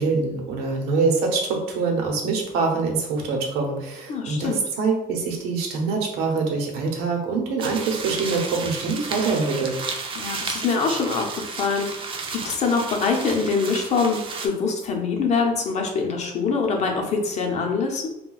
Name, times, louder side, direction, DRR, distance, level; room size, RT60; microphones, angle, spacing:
voice 1, 0.0-9.8, right 4 dB, 90° right, 1 dB, 0.8 m, -24 dB
voice 2, 4.1-4.6 10.2-18.1, left 4 dB, 45° left, 2 dB, 0.6 m, -24 dB
sound 1, 7.6-14.5, right 4 dB, 35° right, 0.4 m, -33 dB
2.3 x 2.2 x 3.9 m, 0.87 s
cardioid pair, 125°, 16 cm